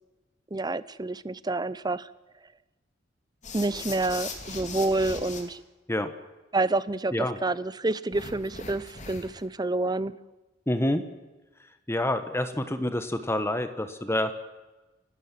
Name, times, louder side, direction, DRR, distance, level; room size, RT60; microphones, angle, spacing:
voice 1, 0.5-2.1 3.5-5.6 6.5-10.1, right 2 dB, 20° right, 17 dB, 0.6 m, -28 dB
sound 1, 3.4-5.4 8.1-9.4, left 4 dB, 40° left, 3.1 m, -39 dB
voice 2, 10.7-11.0 11.9-14.3, left 1 dB, 15° left, 9 dB, 1.2 m, -27 dB
29.5 x 12.5 x 7.6 m, 1.1 s
head